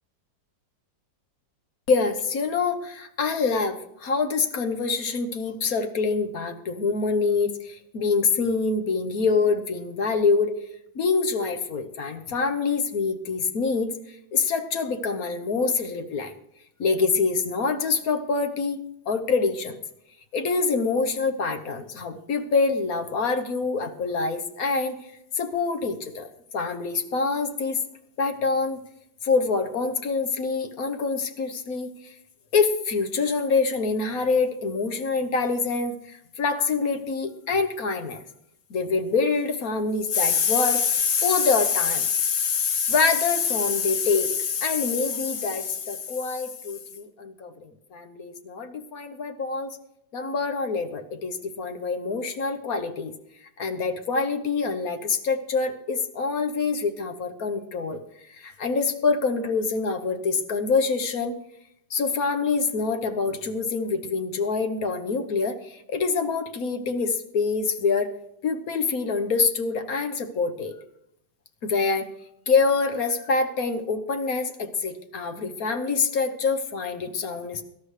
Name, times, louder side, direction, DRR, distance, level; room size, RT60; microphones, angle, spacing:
voice 1, 1.9-10.5 10.9-16.3 16.8-19.7 20.3-25.0 25.3-27.8 28.2-28.8 29.2-32.1 32.5-38.2 38.7-49.8 50.1-53.1 53.6-61.3 61.9-68.1 68.4-70.7 71.6-72.1 72.5-77.6, left 4 dB, 55° left, 6 dB, 1.4 m, -25 dB
24.0 x 12.0 x 3.3 m, 0.79 s
omnidirectional pair, 2.1 m